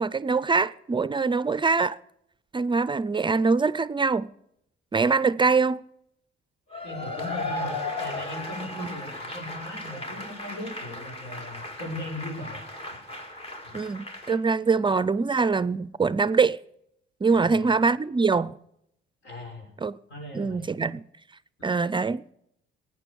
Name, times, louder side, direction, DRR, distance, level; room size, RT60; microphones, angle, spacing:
voice 1, 0.0-2.0 2.5-4.3 4.9-5.8 8.8-8.9 13.7-16.6 17.2-18.6 19.8-20.0 20.3-21.0 21.6-22.2, right 4 dB, 25° right, 0.5 m, -23 dB
Cheering / Applause / Crowd, 6.7-14.4, left 2 dB, 30° left, 2.5 m, -36 dB
voice 2, 6.8-12.7 13.6-13.8 14.6-14.7 17.3-17.7 19.2-19.7 20.1-20.7 21.6-21.7, left 1 dB, 70° left, 6.6 m, -39 dB
17.5 x 9.9 x 6.9 m
cardioid pair, 90°, 20 cm